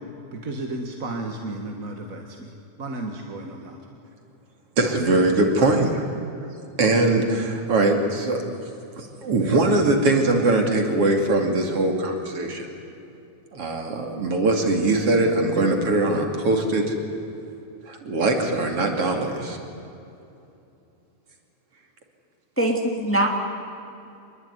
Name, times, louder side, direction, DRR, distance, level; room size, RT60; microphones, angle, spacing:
voice 1, 0.3-2.5 2.8-3.8, right 2 dB, 35° right, 2 dB, 1.7 m, -33 dB
voice 2, 4.8-6.1 6.8-8.4 9.0-12.7 13.5-16.9 17.9-19.6, right 2 dB, 50° right, 3 dB, 3.4 m, -21 dB
voice 3, 22.6-23.3, right 1 dB, 5° left, 1 dB, 2.5 m, -22 dB
25.5 x 22.0 x 9.7 m, 2.7 s
omnidirectional pair, 3.4 m